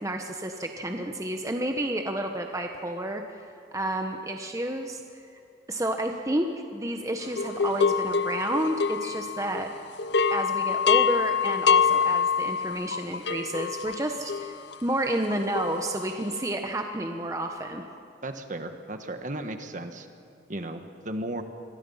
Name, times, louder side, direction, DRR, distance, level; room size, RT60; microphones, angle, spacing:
voice 1, 0.0-3.2 3.7-5.0 5.7-9.7 10.3-14.5 14.8-17.8, right 1 dB, 15° right, 4 dB, 1.1 m, -30 dB
sound 1, 7.4-9.7 10.0-16.3, left 6 dB, 65° left, 0.8 m, -26 dB
voice 2, 18.2-20.1 20.5-21.4, right 1 dB, 45° right, 7 dB, 1.5 m, -35 dB
28.5 x 23.0 x 5.7 m, 2.6 s
head